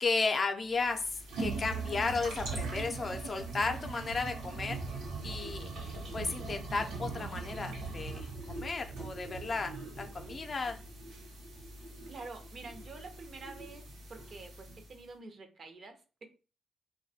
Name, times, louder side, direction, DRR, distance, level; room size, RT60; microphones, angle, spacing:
voice 1, 0.0-4.8 5.2-10.8, left 4 dB, 45° left, 6 dB, 0.4 m, -34 dB
sound 1, 0.7-15.0, right 3 dB, 85° right, 0.8 m, -41 dB
voice 2, 12.1-13.8 14.1-16.2, right 3 dB, 55° right, 6 dB, 0.5 m, -48 dB
2.3 x 2.2 x 2.6 m, 0.34 s
supercardioid pair, 60°, 0 cm